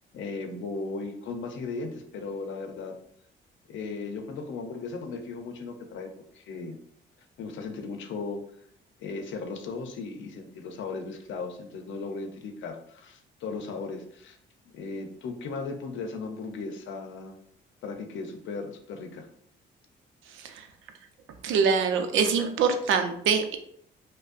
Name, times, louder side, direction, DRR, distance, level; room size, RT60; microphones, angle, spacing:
voice 1, 0.1-3.0 3.7-6.8 7.4-8.4 9.0-14.4 14.6-17.4 17.8-19.3, left 4 dB, 75° left, 5 dB, 0.6 m, -36 dB
voice 2, 21.4-23.6, right 5 dB, 85° right, 6 dB, 0.5 m, -24 dB
5.2 x 2.1 x 2.5 m, 0.67 s
cardioid pair, 90°, 20 cm